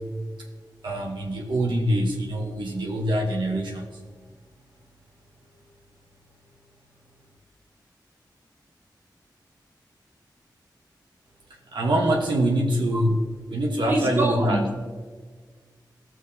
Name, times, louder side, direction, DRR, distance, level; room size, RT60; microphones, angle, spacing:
voice 1, 0.8-4.0 11.7-13.2 13.5-14.6, right 1 dB, 80° right, 0 dB, 1.1 m, -24 dB
voice 2, 13.9-14.8, right 1 dB, 30° right, 0 dB, 1.7 m, -25 dB
15.5 x 6.2 x 2.7 m, 1.5 s
wide cardioid pair, 85°, 8 cm